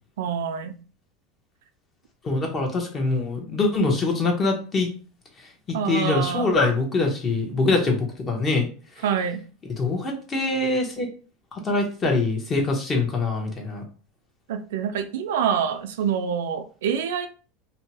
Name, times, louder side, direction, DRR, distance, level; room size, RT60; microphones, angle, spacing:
voice 1, 0.2-0.8 5.7-6.6 9.0-9.4 14.5-17.3, right 8 dB, 80° right, 8 dB, 0.4 m, -26 dB
voice 2, 2.2-4.9 5.7-8.7 9.0-9.1 9.8-11.1 11.5-13.8, left 3 dB, 30° left, 1 dB, 1.0 m, -24 dB
2.7 x 2.2 x 2.9 m, 0.37 s
supercardioid pair, 110°, 0 cm